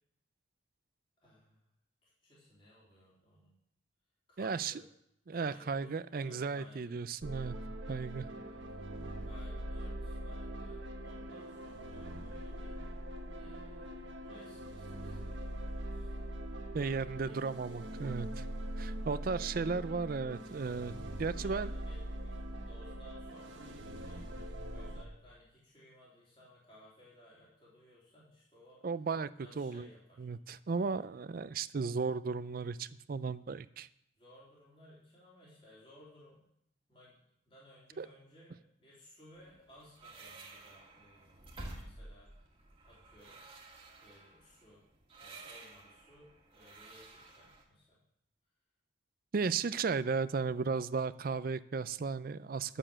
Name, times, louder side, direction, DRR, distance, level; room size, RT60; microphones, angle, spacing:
voice 1, 1.2-1.6 2.0-3.6 4.3-4.8 5.3-7.0 7.8-8.8 9.2-12.8 13.3-16.3 16.8-17.7 18.5-18.7 19.2-20.0 21.2-28.8 29.4-30.3 30.8-31.0 34.2-36.5 36.9-42.5 42.8-43.4 44.0-44.8 45.1-48.0, left 1 dB, 30° left, -7 dB, 3.5 m, -60 dB
voice 2, 4.4-4.7 5.3-7.6 7.9-8.3 16.7-18.5 18.8-21.7 28.8-29.3 29.6-29.9 30.2-33.9 38.0-38.1 49.3-52.8, right 4 dB, 45° right, 15 dB, 0.4 m, -35 dB
sound 1, 7.2-25.0, right 1 dB, 75° right, 1.2 m, -42 dB
sound 2, 39.3-47.6, right 2 dB, 25° right, 1.8 m, -52 dB
11.0 x 7.0 x 7.4 m, 0.75 s
head